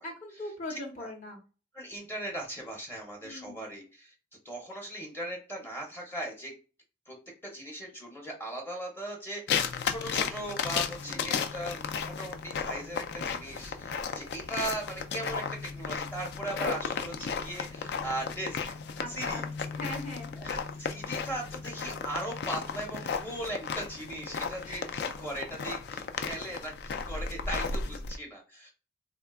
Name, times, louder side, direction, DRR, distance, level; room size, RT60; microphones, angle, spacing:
voice 1, 0.0-1.4 3.2-3.6 11.1-11.3 19.0-20.3 21.1-21.2 24.6-24.9, left 1 dB, 40° left, 0 dB, 0.8 m, -41 dB
voice 2, 0.7-1.1 1.7-4.1 4.4-6.5 7.1-7.2 7.4-15.4 15.8-18.7 19.1-19.4 20.4-28.7, right 1 dB, 10° left, 0 dB, 0.6 m, -38 dB
sound 1, 9.5-28.2, left 6 dB, 60° left, 0.3 m, -34 dB
3.4 x 2.2 x 2.2 m, 0.35 s
head